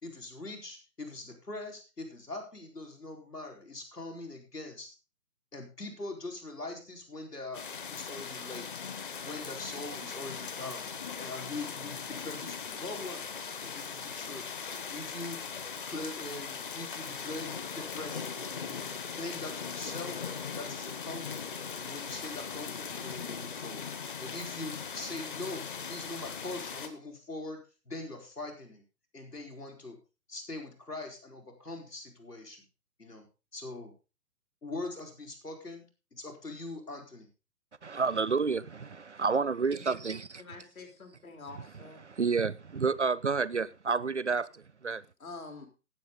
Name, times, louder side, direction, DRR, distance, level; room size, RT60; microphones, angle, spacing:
voice 1, 0.0-4.9 5.5-8.8 9.2-10.9 11.2-13.3 13.6-14.5 14.9-15.4 15.9-18.9 19.2-20.2 20.6-23.9 24.2-28.8 29.1-30.0 30.3-32.6 33.0-33.2 33.5-33.9 34.6-35.8 36.1-37.3, left 2 dB, 75° left, 4.4 m, -42 dB
sound 1, 7.5-26.9, left 6 dB, 30° left, 1.2 m, -39 dB
voice 2, 37.8-40.4 41.5-45.0, right 5 dB, 50° right, 0.5 m, -30 dB
voice 3, 40.4-42.0 45.2-45.7, left 3 dB, 60° left, 3.6 m, -46 dB
17.5 x 7.8 x 3.8 m
figure-of-eight pair, 140°, 47 cm